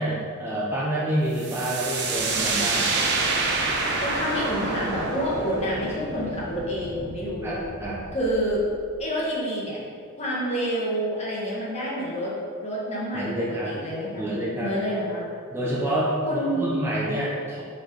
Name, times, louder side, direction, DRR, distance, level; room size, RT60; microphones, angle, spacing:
voice 1, 0.0-3.0 7.4-8.0 13.1-13.7 14.1-14.7 15.5-17.6, right 1 dB, 10° right, -7 dB, 0.9 m, -28 dB
sound 1, 1.4-9.0, right 3 dB, 55° right, 0.8 m, -28 dB
voice 2, 4.0-7.6 8.1-8.6 9.0-9.8 10.2-12.3 12.6-14.3 14.6-15.3 16.2-16.8, equal, 30° left, -5 dB, 1.5 m, -28 dB
4.7 x 4.6 x 5.2 m, 2.1 s
head